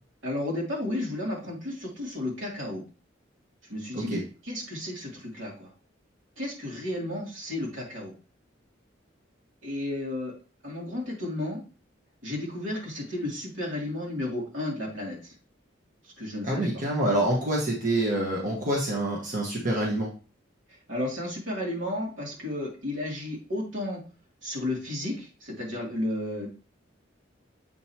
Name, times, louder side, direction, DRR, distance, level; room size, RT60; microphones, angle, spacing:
voice 1, 0.2-2.8 3.7-4.2 4.4-5.7 6.4-8.1 9.6-10.3 10.6-11.6 12.2-15.3 16.2-16.7 20.7-24.0 24.4-26.5, left 1 dB, 80° right, -3 dB, 3.0 m, -33 dB
voice 2, 16.4-20.1, right 1 dB, 40° right, -2 dB, 1.4 m, -26 dB
8.1 x 5.3 x 3.0 m, 0.35 s
head